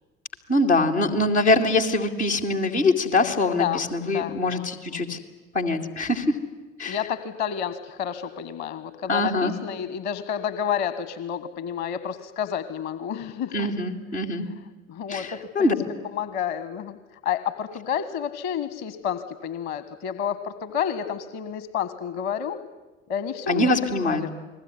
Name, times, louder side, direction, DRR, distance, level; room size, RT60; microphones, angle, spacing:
voice 1, 0.5-5.2 5.5-6.4 6.8-7.0 9.1-9.5 13.5-14.5 15.1-15.7 23.5-24.3, left 2 dB, 85° left, -2 dB, 2.7 m, -23 dB
voice 2, 4.1-4.6 4.9-5.2 6.8-13.7 14.9-15.8 16.1-22.6 23.1-24.3, left 8 dB, 50° left, 13 dB, 1.6 m, -30 dB
29.5 x 20.5 x 9.9 m, 1.2 s
figure-of-eight pair, 60°, 33 cm